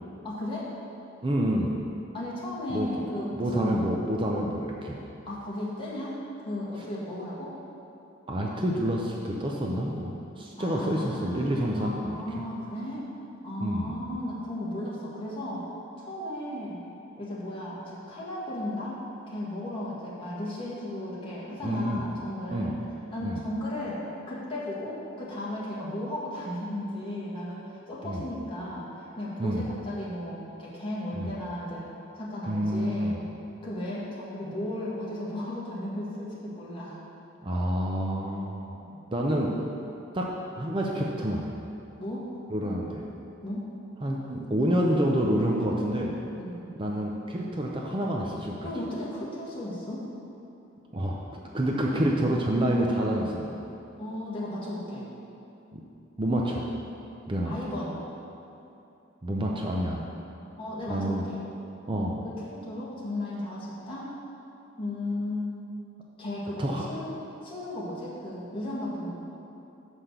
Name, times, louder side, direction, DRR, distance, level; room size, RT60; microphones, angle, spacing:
voice 1, 0.2-0.7 2.1-3.8 5.3-7.5 10.6-13.0 13.4-15.7 16.0-16.8 17.2-19.0 19.3-22.7 23.1-31.9 32.2-33.2 33.6-37.0 38.7-39.0 42.0-42.3 43.4-43.7 46.4-46.6 48.6-50.1 54.0-55.1 57.4-58.0 60.6-61.4 62.2-64.1 64.8-65.6 66.2-67.1 67.4-69.1, left 1 dB, 25° left, -7 dB, 1.8 m, -35 dB
voice 2, 1.2-1.7 2.7-2.9 3.4-5.0 8.3-12.4 13.6-13.9 21.6-22.0 22.5-22.7 23.2-23.4 28.0-28.2 29.4-29.7 31.1-31.3 32.5-33.1 37.4-38.7 39.1-39.5 40.1-40.3 40.5-41.5 42.5-43.0 44.0-46.1 46.8-48.7 50.9-53.6 55.7-55.8 56.2-56.7 57.3-57.6 59.2-60.1 60.9-61.2 61.9-62.2 66.6-66.8, right 1 dB, 25° right, -1 dB, 0.6 m, -28 dB
6.3 x 5.8 x 6.7 m, 2.8 s
head